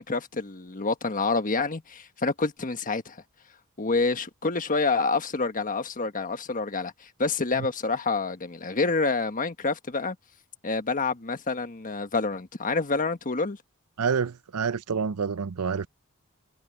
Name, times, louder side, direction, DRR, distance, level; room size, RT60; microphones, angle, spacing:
voice 1, 0.0-3.2 3.8-10.2 10.6-13.6, left 3 dB, 40° left, 1.4 m, -27 dB
voice 2, 14.0-15.9, right 6 dB, 80° right, 0.6 m, -28 dB
head